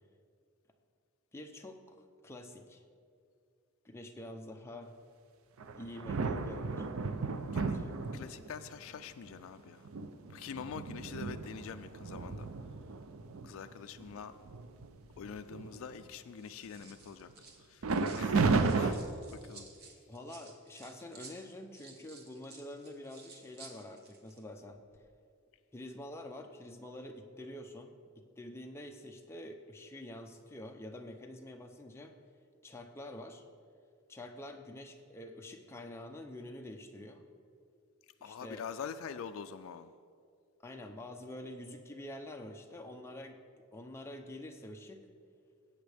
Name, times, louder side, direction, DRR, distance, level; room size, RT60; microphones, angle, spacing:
voice 1, 1.3-2.8 3.8-4.9 5.7-6.9 7.5-8.5 20.1-24.8 25.7-32.2 32.6-33.4 34.1-37.2 38.2-38.7 40.6-43.4 43.7-45.1, left 1 dB, 10° left, 0.6 m, -47 dB
sound 1, 5.6-8.6 9.3-9.4 9.8-13.5 14.0-14.1 14.4-14.9 15.2-16.0 17.8-18.9, right 4 dB, 60° right, 0.5 m, -33 dB
voice 2, 8.1-9.9 10.3-12.5 13.4-14.3 15.2-17.3 17.7-17.9 18.2-19.0 19.3-19.7 38.2-39.9, left 7 dB, 60° left, 0.3 m, -45 dB
sound 2, 14.8-15.3 16.2-18.3 18.6-24.4 24.7-25.0, right 4 dB, 45° right, 1.1 m, -55 dB
14.5 x 8.2 x 3.4 m
head